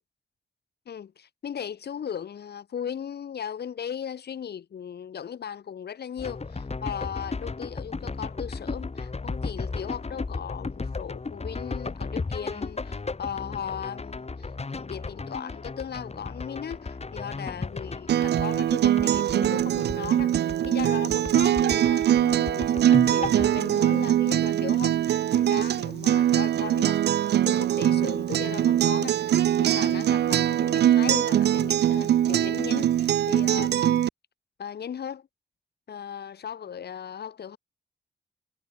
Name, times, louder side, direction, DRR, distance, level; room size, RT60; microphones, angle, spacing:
voice 1, 0.9-27.0 27.4-34.1 34.6-35.3 35.9-37.6, left 8 dB, 75° left, 1.6 m, -37 dB
sound 1, 6.2-20.9 21.1-23.6, left 4 dB, 40° left, 2.7 m, -34 dB
Acoustic guitar, 18.1-34.1, right 11 dB, 90° right, 0.7 m, -22 dB
cardioid pair, 55°, 17 cm